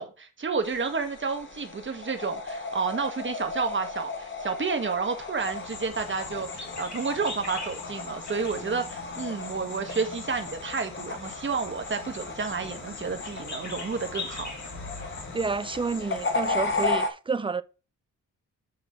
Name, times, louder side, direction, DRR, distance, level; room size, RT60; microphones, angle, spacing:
voice 1, 0.0-14.5, right 5 dB, 35° right, 1.5 m, -30 dB
sound 1, 0.6-17.1, left 3 dB, 35° left, 1.5 m, -35 dB
sound 2, 5.4-16.9, left 3 dB, 60° left, 2.7 m, -40 dB
voice 2, 15.3-17.6, right 4 dB, 15° right, 0.4 m, -29 dB
8.8 x 3.3 x 5.8 m
cardioid pair, 110°, 33 cm